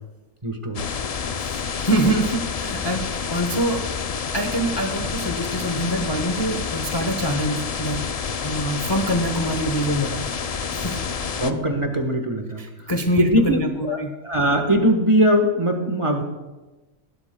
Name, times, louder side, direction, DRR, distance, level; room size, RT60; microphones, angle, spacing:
voice 1, 0.4-0.9 11.4-12.6 13.1-16.2, equal, 25° right, 4 dB, 1.1 m, -21 dB
sound 1, 0.7-11.5, left 6 dB, 75° left, 0.3 m, -28 dB
voice 2, 1.4-3.8 4.3-8.0 8.4-10.3 10.8-11.0 12.6-14.1, right 1 dB, 25° left, 4 dB, 0.7 m, -25 dB
18.0 x 12.5 x 2.2 m, 1.1 s
omnidirectional pair, 1.4 m